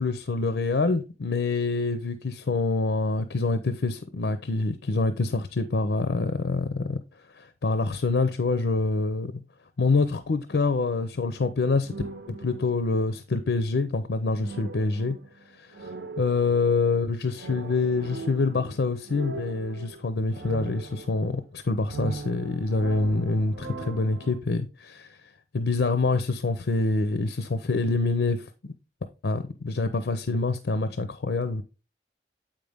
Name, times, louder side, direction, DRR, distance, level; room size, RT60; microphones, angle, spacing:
voice 1, 0.0-7.0 7.3-9.4 9.8-12.0 12.3-15.2 15.5-25.2 25.5-28.5 29.2-31.6, left 3 dB, 80° left, 0.6 m, -26 dB
sound 1, 11.8-13.1 14.4-16.9 17.4-21.5 21.8-24.4, right 3 dB, 90° right, 0.9 m, -40 dB
7.4 x 5.2 x 3.5 m
head